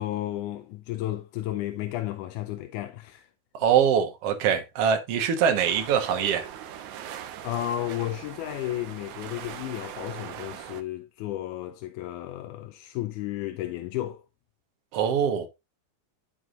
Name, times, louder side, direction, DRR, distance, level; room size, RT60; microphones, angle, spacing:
voice 1, 0.0-3.3 7.1-14.2, left 14 dB, 85° left, 2.1 m, -33 dB
voice 2, 3.5-6.5 14.9-15.5, right 8 dB, 55° right, 2.1 m, -23 dB
sound 1, 5.6-10.8, right 10 dB, 75° right, 2.1 m, -41 dB
12.5 x 4.7 x 2.4 m
omnidirectional pair, 3.6 m